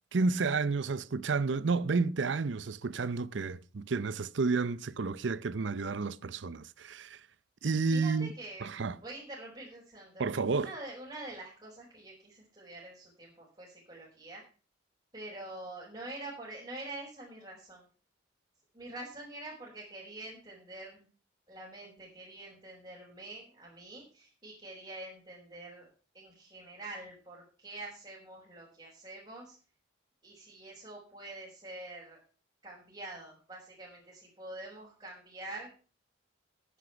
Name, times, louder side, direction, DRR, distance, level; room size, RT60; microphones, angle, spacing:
voice 1, 0.1-7.2 7.6-8.3 8.6-9.0 10.2-10.7, right 4 dB, 75° right, 0.6 m, -31 dB
voice 2, 7.9-8.7 8.9-14.4 15.1-17.9 18.7-21.0 21.5-25.9 26.1-29.6 30.2-32.2 32.6-35.7, right 2 dB, 25° right, 4.8 m, -46 dB
10.0 x 10.0 x 5.8 m
head